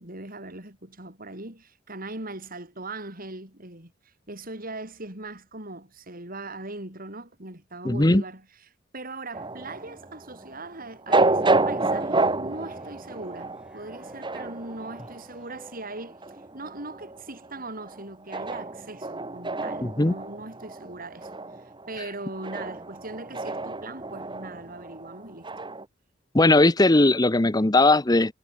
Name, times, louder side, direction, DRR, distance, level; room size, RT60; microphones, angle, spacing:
voice 1, 0.0-3.9 4.3-8.5 8.9-21.3 21.9-25.5, right 2 dB, 45° right, 7.3 m, -40 dB
voice 2, 7.8-8.2 19.8-20.1 26.3-28.3, left 2 dB, 20° left, 0.9 m, -19 dB
sound 1, 9.3-25.8, right 2 dB, 25° right, 2.2 m, -29 dB
sound 2, 11.2-16.6, equal, 5° right, 7.0 m, -53 dB
head